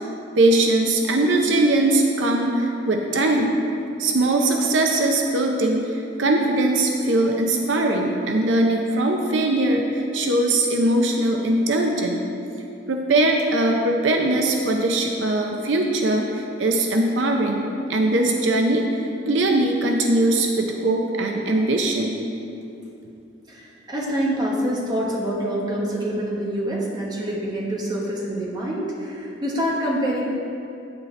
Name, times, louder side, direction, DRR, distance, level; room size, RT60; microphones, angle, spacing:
voice 1, 0.4-3.6 4.0-12.2 12.9-22.2, right 2 dB, 70° right, 2 dB, 0.6 m, -21 dB
voice 2, 23.5-30.3, equal, 20° right, -4 dB, 1.1 m, -26 dB
8.5 x 7.3 x 3.2 m, 2.7 s
head